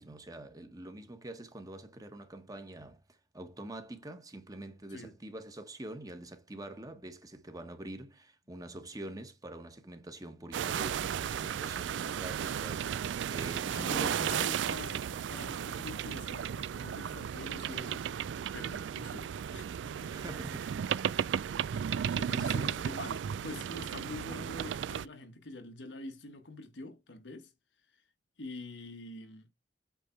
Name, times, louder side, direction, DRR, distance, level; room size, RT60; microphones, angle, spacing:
voice 1, 0.0-14.5 20.1-20.9, right 1 dB, 20° right, 1.2 m, -46 dB
sound 1, 10.5-25.1, right 8 dB, 85° right, 0.3 m, -34 dB
voice 2, 13.7-18.1 18.5-20.1 22.1-27.5 28.4-29.5, left 2 dB, 85° left, 1.4 m, -45 dB
8.3 x 3.5 x 4.5 m
head